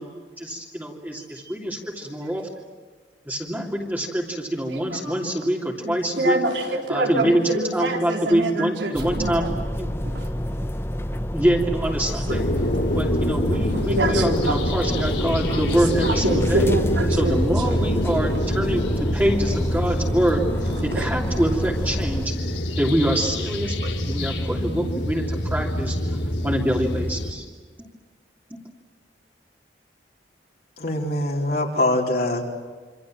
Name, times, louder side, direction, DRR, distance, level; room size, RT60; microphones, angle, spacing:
voice 1, 0.0-2.4 3.3-6.4 6.9-7.4 7.7-9.5 9.8-9.9 11.3-12.4 13.0-16.7 17.2-20.4 20.8-22.3 22.8-23.8 24.1-26.0 26.4-27.4, right 1 dB, 10° right, -2 dB, 2.9 m, -25 dB
voice 2, 4.7-5.2 5.8-9.5 10.0-10.3 12.0-12.5 12.7-12.9 13.5-14.5 14.8-15.1 15.5-17.8 20.9-21.1 24.0-24.1, right 1 dB, 90° right, 2 dB, 4.7 m, -27 dB
sound 1, 8.9-22.3, equal, 15° left, 1.0 m, -29 dB
Day forest ambience, 12.3-27.3, equal, 75° left, 3.3 m, -25 dB
voice 3, 30.8-32.4, left 1 dB, 55° left, -1 dB, 4.1 m, -23 dB
27.5 x 26.5 x 7.7 m, 1.5 s
head